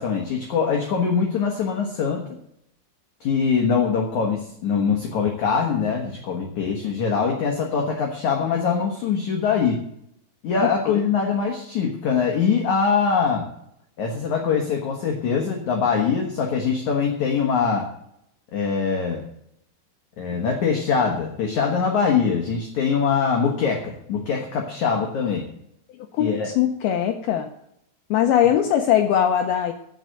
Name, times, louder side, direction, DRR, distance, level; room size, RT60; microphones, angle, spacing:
voice 1, 0.0-2.3 3.2-9.8 10.4-13.5 14.0-17.9 18.5-19.2 20.2-25.5 26.2-26.5, left 6 dB, 65° left, 1 dB, 1.9 m, -23 dB
voice 2, 26.1-27.5 28.1-29.7, left 10 dB, 80° left, 5 dB, 2.2 m, -20 dB
16.0 x 5.4 x 7.6 m, 0.76 s
omnidirectional pair, 5.5 m